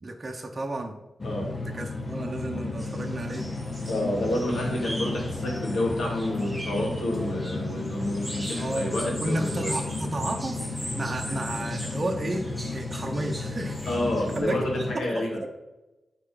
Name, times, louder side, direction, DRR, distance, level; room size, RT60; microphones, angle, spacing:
voice 1, 0.0-1.0 1.7-3.5 8.5-8.9 9.2-12.5 12.7-13.8 14.3-15.5, right 2 dB, 35° right, 2 dB, 0.9 m, -32 dB
sound 1, 1.2-15.0, left 2 dB, 35° left, 0.6 m, -34 dB
sound 2, 2.8-14.4, equal, ahead, 1.8 m, -39 dB
voice 2, 3.9-9.7 13.9-15.4, left 1 dB, 85° left, -2 dB, 2.3 m, -29 dB
9.3 x 4.5 x 3.9 m, 1.0 s
wide cardioid pair, 90°, 0 cm